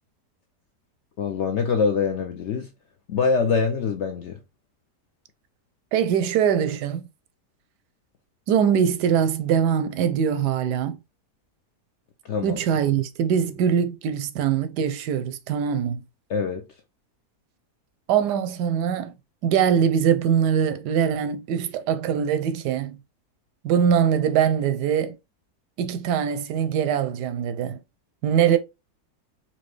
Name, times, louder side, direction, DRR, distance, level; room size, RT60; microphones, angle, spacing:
voice 1, 1.2-2.7 3.1-4.4 12.2-12.6 16.3-16.6, left 5 dB, 70° left, 0.7 m, -24 dB
voice 2, 5.9-7.1 8.5-11.0 12.4-16.0 18.1-19.1 19.4-23.0 23.6-25.1 25.8-27.8 28.2-28.6, right 8 dB, 85° right, 1.2 m, -22 dB
4.3 x 2.7 x 3.1 m
omnidirectional pair, 1.7 m